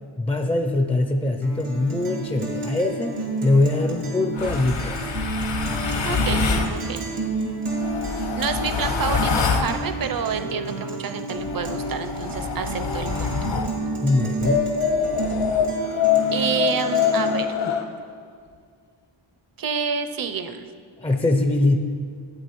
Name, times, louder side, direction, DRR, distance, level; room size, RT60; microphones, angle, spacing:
voice 1, 0.2-5.0 14.0-14.6 21.0-21.8, left 2 dB, 15° left, 4 dB, 0.4 m, -22 dB
Guitar, 1.4-17.4, right 2 dB, 90° right, 1.8 m, -30 dB
sound 1, 4.4-6.7 7.7-9.7 11.4-13.7 14.4-17.8, left 6 dB, 60° left, 0.9 m, -25 dB
voice 2, 6.0-6.4 6.7-7.0 8.1-13.3 16.3-17.5 19.6-20.7, right 6 dB, 45° right, 8 dB, 0.6 m, -28 dB
12.5 x 8.2 x 3.0 m, 2.1 s
wide cardioid pair, 85°, 48 cm